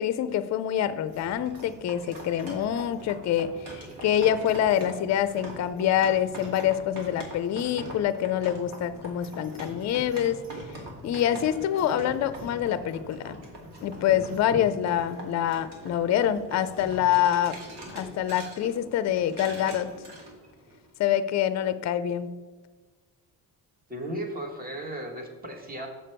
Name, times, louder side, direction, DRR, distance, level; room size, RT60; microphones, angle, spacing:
voice 1, 0.0-10.4 11.0-13.4 13.8-17.6 17.9-19.9 21.0-22.3, left 10 dB, 45° left, 13 dB, 0.4 m, -26 dB
sound 1, 1.1-20.9, right 1 dB, 85° right, 2.2 m, -43 dB
voice 2, 23.9-25.9, right 1 dB, 20° right, 3 dB, 1.2 m, -35 dB
6.8 x 6.8 x 4.4 m, 1.4 s
cardioid pair, 150°, 40 cm